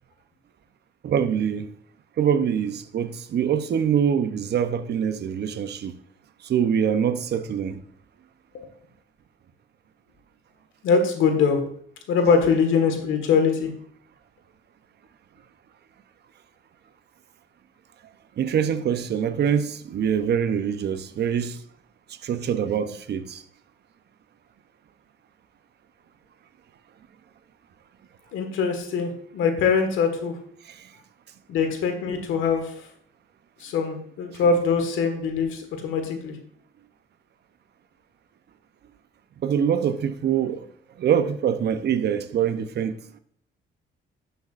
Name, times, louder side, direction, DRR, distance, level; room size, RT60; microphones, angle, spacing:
voice 1, 1.0-1.7 2.2-5.9 6.4-7.8 18.4-21.6 22.1-23.4 30.6-30.9 39.4-40.7 41.0-43.0, right 8 dB, 55° right, 0.8 m, -24 dB
voice 2, 10.8-11.6 12.1-13.7 28.3-30.3 31.5-32.9 33.6-36.3, left 5 dB, 90° left, 1.6 m, -22 dB
11.5 x 6.9 x 2.5 m
cardioid pair, 90°, 20 cm